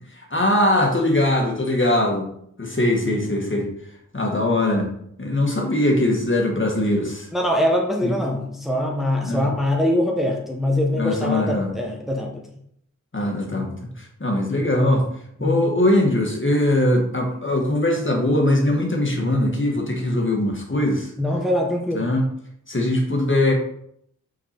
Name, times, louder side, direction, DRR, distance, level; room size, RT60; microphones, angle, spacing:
voice 1, 0.1-2.3 2.6-3.7 4.1-4.9 5.2-7.3 8.0-8.1 9.2-9.5 11.0-11.7 13.1-15.0 15.4-21.1 21.9-22.3 22.7-23.5, left 1 dB, 40° left, 1 dB, 1.7 m, -21 dB
voice 2, 7.3-12.4 15.4-15.6 21.2-22.1, left 1 dB, ahead, 0 dB, 1.2 m, -23 dB
5.9 x 5.8 x 4.4 m, 0.70 s
wide cardioid pair, 75°, 31 cm